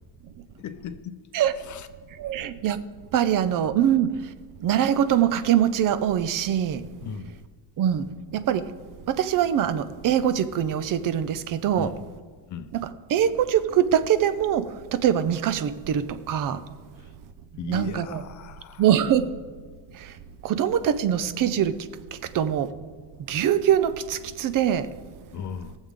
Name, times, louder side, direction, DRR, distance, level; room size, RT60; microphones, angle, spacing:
voice 1, 0.6-1.2 1.6-1.9 7.0-7.4 11.8-12.1 12.5-12.7 17.6-18.9 25.3-25.8, left 7 dB, 40° left, 0.6 m, -37 dB
voice 2, 2.1-2.8 3.1-4.3 4.6-6.9 7.8-8.7 9.1-11.9 12.7-16.6 17.6-18.2 18.8-19.3 19.9-20.2 20.4-21.8 22.1-22.7 23.3-24.9, right 10 dB, 45° right, 0.6 m, -23 dB
18.5 x 7.3 x 3.7 m
cardioid pair, 165°, 45 cm